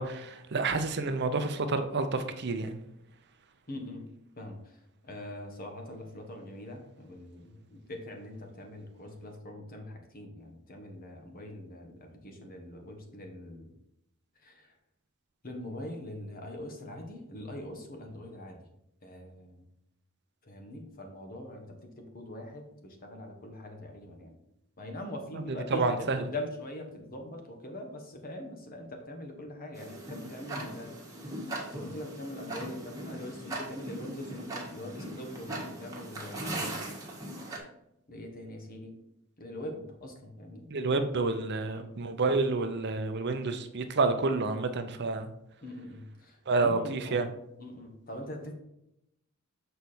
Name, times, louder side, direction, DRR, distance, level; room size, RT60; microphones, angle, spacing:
voice 1, 0.0-2.8 25.3-26.3 40.7-45.3 46.5-47.3, right 3 dB, 55° right, 8 dB, 0.7 m, -29 dB
voice 2, 3.7-13.7 14.4-14.7 15.4-18.7 19.0-19.6 20.4-24.4 24.8-31.3 31.7-36.8 38.1-39.0 39.4-40.7 41.7-41.9 45.6-47.2 47.6-48.5, left 1 dB, 45° left, 3 dB, 1.2 m, -43 dB
Tick-tock, 29.7-37.6, right 1 dB, 15° right, 1.6 m, -39 dB
6.7 x 4.6 x 4.3 m, 0.82 s
head